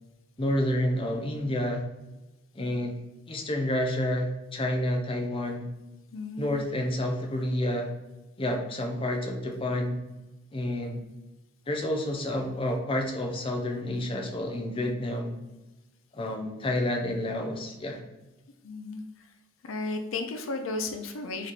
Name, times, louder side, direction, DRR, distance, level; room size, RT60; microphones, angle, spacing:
voice 1, 0.4-1.8 2.5-3.0 3.3-5.7 6.4-7.9 8.4-10.0 10.5-11.0 11.7-15.4 16.1-18.0, left 1 dB, 25° left, 3 dB, 0.6 m, -29 dB
voice 2, 6.1-6.6 18.6-19.3 19.6-21.5, left 3 dB, 75° left, 7 dB, 0.5 m, -34 dB
4.0 x 3.1 x 4.1 m, 1.0 s
head